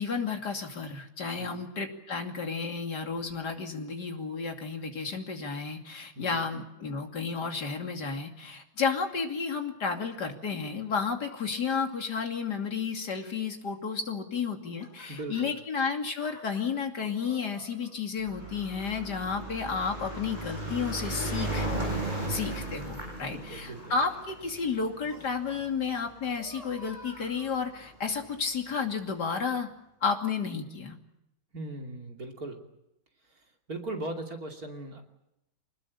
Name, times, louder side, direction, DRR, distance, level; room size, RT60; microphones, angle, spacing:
voice 1, 0.0-21.7 22.3-29.7 30.0-31.0, left 5 dB, 55° left, 4 dB, 3.2 m, -32 dB
sound 1, 14.6-15.6 16.2-17.9 18.4-19.0 19.5-20.8 21.5-22.5 23.4-24.5 25.0-25.6 26.0-28.1 28.8-28.9, equal, 20° left, 8.1 m, -51 dB
voice 2, 15.1-15.5 22.2-22.4 23.3-24.0 31.5-32.7 33.3-35.0, right 2 dB, 50° right, 3 dB, 3.3 m, -39 dB
sound 2, 18.2-26.7 27.5-27.6 27.8-27.9 28.2-28.3, right 1 dB, 20° right, 7.5 m, -36 dB
25.0 x 20.5 x 8.6 m, 0.87 s
omnidirectional pair, 2.1 m